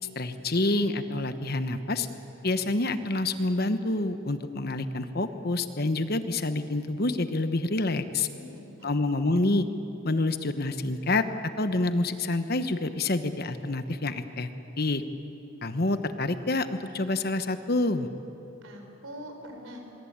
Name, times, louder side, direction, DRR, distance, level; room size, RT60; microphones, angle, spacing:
voice 1, 0.1-2.1 2.4-8.3 8.8-9.7 10.0-11.3 11.6-14.5 14.8-15.0 15.6-18.1, left 2 dB, 50° left, 9 dB, 1.1 m, -27 dB
voice 2, 8.3-9.0 18.6-19.8, equal, 85° right, 4 dB, 4.7 m, -44 dB
24.0 x 23.0 x 8.8 m, 3.0 s
head